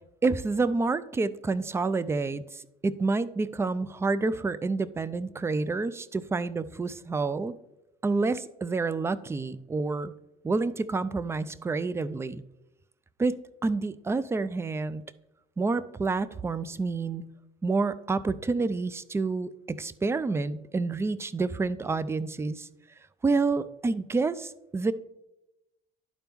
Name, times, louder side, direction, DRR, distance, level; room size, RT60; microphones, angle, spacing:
voice 1, 0.2-7.5 8.0-10.1 10.4-12.4 13.2-13.3 13.6-15.0 15.6-17.3 17.6-22.7 23.2-24.9, right 3 dB, 15° right, 16 dB, 0.4 m, -28 dB
11.0 x 4.4 x 3.5 m, 0.90 s
cardioid pair, 110°, 17 cm